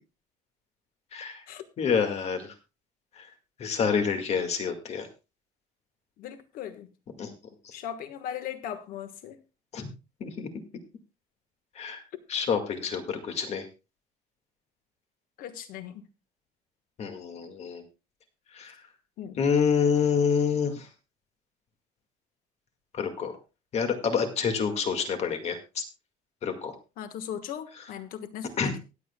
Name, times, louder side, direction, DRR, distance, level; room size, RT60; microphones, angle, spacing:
voice 1, 1.1-1.4 1.8-2.5 3.2-3.3 3.6-5.1 7.2-7.3 7.6-7.7 9.7-9.9 10.2-10.5 11.8-12.0 12.3-13.7 17.0-17.8 18.5-18.8 19.4-20.9 22.9-23.3 23.7-25.8 26.4-26.8 28.6-28.7, left 6 dB, 45° left, 6 dB, 1.9 m, -27 dB
voice 2, 6.2-6.9 7.7-9.4 15.4-16.0 19.2-19.4 27.0-28.8, left 9 dB, 70° left, 10 dB, 1.4 m, -38 dB
23.5 x 7.9 x 2.3 m, 0.29 s
cardioid pair, 155°, 15 cm